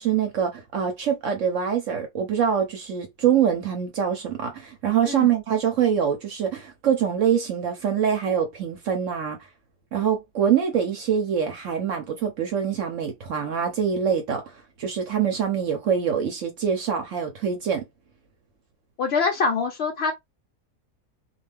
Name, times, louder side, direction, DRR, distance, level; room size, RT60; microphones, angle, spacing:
voice 1, 0.0-9.4 9.9-14.4 14.8-17.8, right 8 dB, 65° right, 0.8 m, -24 dB
voice 2, 19.0-20.1, left 4 dB, 75° left, 0.5 m, -24 dB
2.5 x 2.3 x 3.2 m
omnidirectional pair, 1.7 m